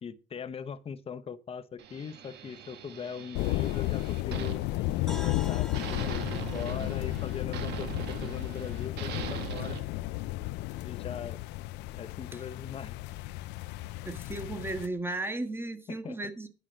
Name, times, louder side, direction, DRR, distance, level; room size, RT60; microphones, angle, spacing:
voice 1, 0.0-4.6 5.1-9.8 10.8-11.4 11.9-13.0 16.0-16.2, left 7 dB, 35° left, 0.8 m, -40 dB
sound 1, 1.8-5.4 5.7-9.8, right 8 dB, 80° right, 1.6 m, -41 dB
sound 2, 3.3-14.9, left 18 dB, 85° left, 0.4 m, -33 dB
sound 3, 5.1-9.0, left 1 dB, 5° left, 1.3 m, -48 dB
voice 2, 14.0-16.5, right 2 dB, 15° right, 1.4 m, -35 dB
9.9 x 5.7 x 6.2 m
cardioid pair, 110°, 17 cm